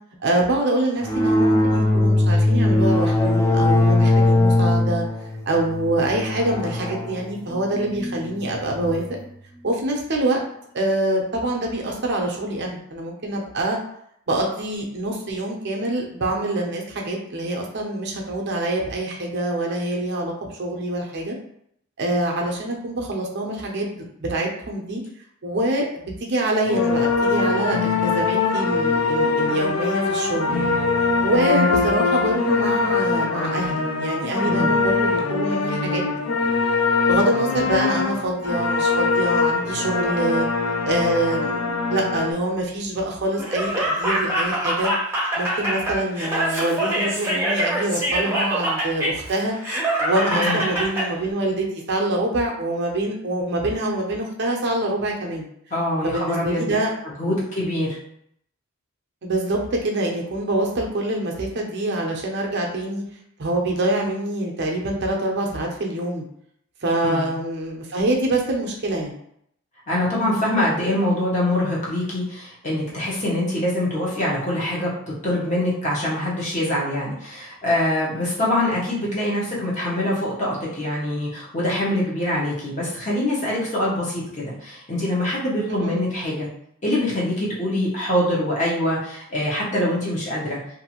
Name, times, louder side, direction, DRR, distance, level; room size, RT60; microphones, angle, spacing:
voice 1, 0.2-5.0 5.5-9.0 9.6-10.4 10.7-13.8 14.3-21.4 22.0-25.0 25.4-30.8 31.2-36.0 37.1-40.5 40.8-44.9 45.4-49.6 50.0-55.5 56.0-56.9 57.2-57.4 59.2-63.0 63.4-66.2 66.8-69.2 85.7-86.0, right 1 dB, 55° right, 0 dB, 0.6 m, -25 dB
sound 1, 1.0-9.1, left 2 dB, 15° left, 0.4 m, -20 dB
sound 2, 26.7-42.3, left 4 dB, 80° left, 0.4 m, -22 dB
voice 2, 31.5-31.8 34.4-34.8 50.3-50.6 55.7-56.7 57.2-58.0 67.0-67.3 69.9-74.9 75.2-86.5 86.8-90.6, left 1 dB, 35° left, -6 dB, 0.9 m, -24 dB
Laughter, 43.4-51.1, right 1 dB, 10° right, 0.7 m, -24 dB
2.6 x 2.6 x 2.9 m, 0.71 s
head